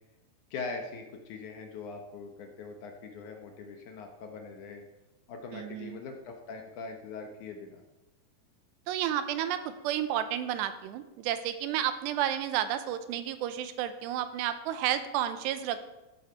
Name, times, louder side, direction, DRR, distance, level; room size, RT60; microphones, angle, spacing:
voice 1, 0.5-4.8 5.3-7.8, left 4 dB, 70° left, 3 dB, 2.0 m, -42 dB
voice 2, 5.5-6.0 8.9-15.9, right 11 dB, 85° right, 11 dB, 2.9 m, -31 dB
13.5 x 8.1 x 5.6 m, 1.0 s
omnidirectional pair, 4.8 m